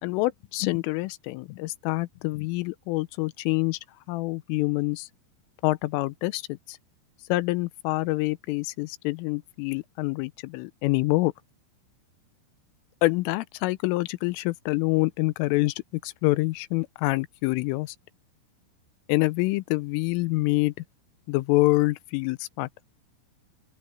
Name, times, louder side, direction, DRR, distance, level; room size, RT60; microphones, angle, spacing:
voice 1, 0.0-3.8 4.1-5.1 5.6-6.8 7.3-11.3 13.0-15.7 16.0-18.0 19.1-20.7 21.3-22.7, left 21 dB, 85° left, 3.2 m, -26 dB
open air
omnidirectional pair, 5.8 m